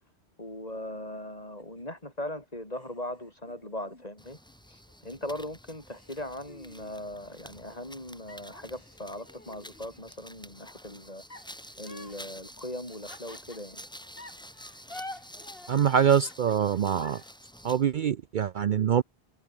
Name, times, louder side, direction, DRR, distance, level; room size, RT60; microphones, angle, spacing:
voice 1, 0.4-4.4 4.7-11.2 11.8-13.8, left 1 dB, 35° left, 5.9 m, -39 dB
sound 1, 0.7-2.0 2.7-4.9 5.4-5.5 5.9-7.9 8.3-10.3 11.3-13.8 14.2-17.3, left 2 dB, 65° left, 5.5 m, -49 dB
sound 2, 4.2-17.9, equal, 5° left, 3.0 m, -49 dB
voice 2, 15.7-17.2 17.6-19.0, right 8 dB, 55° right, 0.6 m, -24 dB
omnidirectional pair, 1.1 m